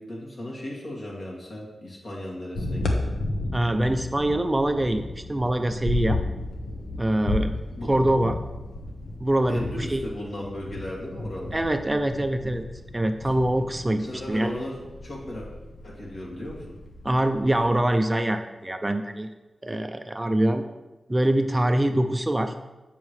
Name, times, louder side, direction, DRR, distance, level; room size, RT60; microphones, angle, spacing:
voice 1, 0.0-3.2 7.8-7.9 9.5-11.6 13.2-13.3 14.0-15.5 15.8-16.7, left 1 dB, 60° left, -3 dB, 2.2 m, -36 dB
sound 1, 2.5-18.0, left 2 dB, 85° left, 1.0 m, -34 dB
voice 2, 3.5-6.2 7.0-7.5 7.9-8.4 9.2-10.0 11.5-12.6 12.9-14.5 17.0-19.3 19.6-20.6 21.1-22.5, right 1 dB, 20° right, 7 dB, 0.4 m, -24 dB
8.4 x 7.1 x 3.2 m, 1.1 s
wide cardioid pair, 90°, 0 cm